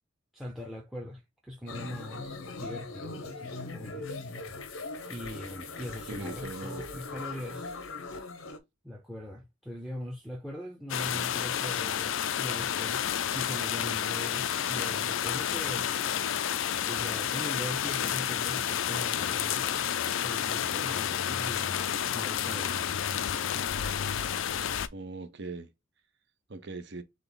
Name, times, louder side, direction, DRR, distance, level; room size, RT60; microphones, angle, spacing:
voice 1, 0.3-4.1 5.1-7.7 8.8-15.9 16.8-19.9 20.2-22.8, equal, ahead, 0.6 m, -41 dB
sound 1, 1.7-8.6, left 3 dB, 90° left, 0.9 m, -40 dB
voice 2, 6.1-6.8 24.6-25.7 26.5-27.0, right 3 dB, 55° right, 0.8 m, -40 dB
sound 2, 10.9-24.9, left 9 dB, 70° left, 0.4 m, -30 dB
3.8 x 3.4 x 3.8 m
head